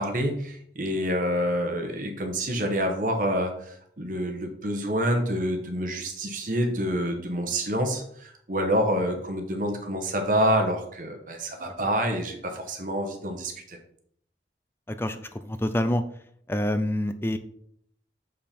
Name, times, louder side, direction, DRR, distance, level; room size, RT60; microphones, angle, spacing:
voice 1, 0.0-13.8, equal, 45° right, 4 dB, 1.0 m, -27 dB
voice 2, 14.9-15.2 15.4-16.0 16.5-17.4, left 1 dB, 15° left, 10 dB, 0.4 m, -26 dB
6.6 x 5.7 x 4.3 m, 0.67 s
head